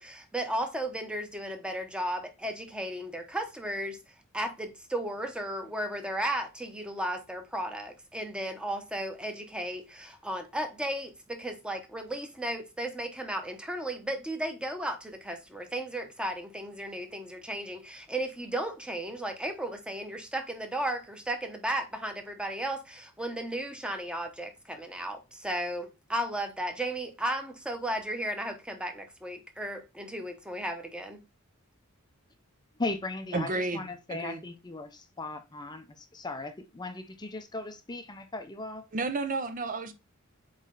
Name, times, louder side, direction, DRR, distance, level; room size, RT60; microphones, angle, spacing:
voice 1, 0.0-4.0 4.3-31.2, right 1 dB, 5° right, 0.9 m, -35 dB
voice 2, 32.8-38.9, left 2 dB, 20° left, 0.6 m, -37 dB
voice 3, 33.3-34.4 38.9-39.9, right 3 dB, 40° right, 0.5 m, -32 dB
8.1 x 3.2 x 3.8 m
head